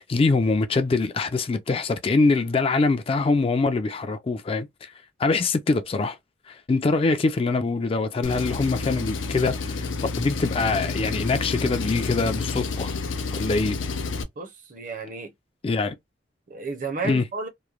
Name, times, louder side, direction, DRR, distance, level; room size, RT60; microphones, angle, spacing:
voice 1, 0.0-4.9 5.2-6.2 6.5-9.9 10.2-12.9 13.3-13.8 15.6-16.0 17.0-17.2, left 3 dB, 30° left, 0.3 m, -23 dB
Engine, 8.2-14.2, left 4 dB, 90° left, 0.6 m, -29 dB
voice 2, 14.4-15.3 16.5-17.5, right 3 dB, 45° right, 0.6 m, -32 dB
3.0 x 2.1 x 2.3 m
head